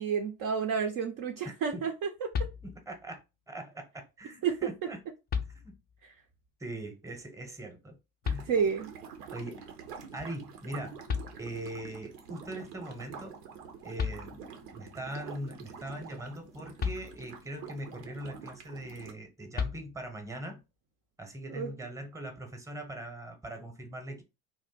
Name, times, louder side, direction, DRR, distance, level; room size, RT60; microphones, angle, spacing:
voice 1, 0.0-2.5 4.4-4.6 8.5-8.9 21.5-21.7, right 6 dB, 45° right, 0.5 m, -30 dB
voice 2, 1.4-1.9 2.6-3.2 3.5-5.0 5.5-5.7 6.6-8.0 8.3-8.5 9.3-9.6 10.1-11.0 11.4-13.4 13.8-14.4 14.7-20.6 21.2-24.2, right 1 dB, 5° right, 0.8 m, -41 dB
sound 1, 2.3-3.1 4.6-4.7 5.3-6.1 8.2-9.0 10.7-10.8 11.1-11.9 13.6-13.7 14.0-14.7 16.8-17.6 19.5-20.3, left 6 dB, 20° left, 0.4 m, -35 dB
sound 2, 8.2-19.1, right 6 dB, 85° right, 0.7 m, -47 dB
2.6 x 2.1 x 3.7 m
hypercardioid pair, 60°, 45 cm